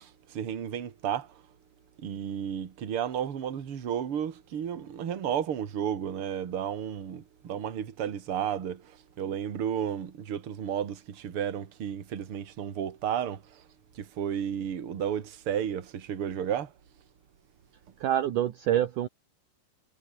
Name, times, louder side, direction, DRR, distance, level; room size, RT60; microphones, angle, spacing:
voice 1, 0.0-1.4 2.0-13.6 13.9-16.7, right 9 dB, 40° right, 2.6 m, -33 dB
voice 2, 18.0-19.1, right 11 dB, 65° right, 2.5 m, -26 dB
omnidirectional pair, 4.5 m